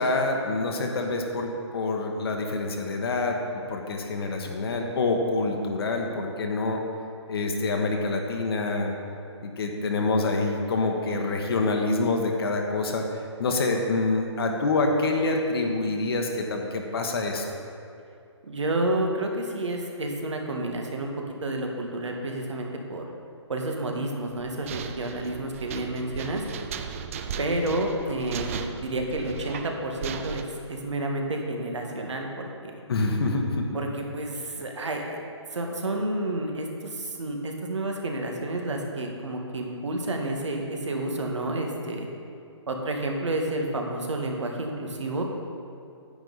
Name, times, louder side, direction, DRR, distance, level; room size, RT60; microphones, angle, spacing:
voice 1, 0.0-3.4 3.7-6.8 7.3-8.9 9.4-13.1 13.4-17.4 32.9-33.8, left 3 dB, 55° left, 2 dB, 1.2 m, -26 dB
voice 2, 18.4-21.1 21.4-23.0 23.5-26.4 27.4-32.7 33.7-35.2 35.5-42.1 42.7-45.2, right 1 dB, 75° right, 2 dB, 1.7 m, -30 dB
sound 1, 24.3-30.4, right 6 dB, 30° right, 0.4 m, -37 dB
10.0 x 8.7 x 4.0 m, 2.5 s
hypercardioid pair, 150°, 15 cm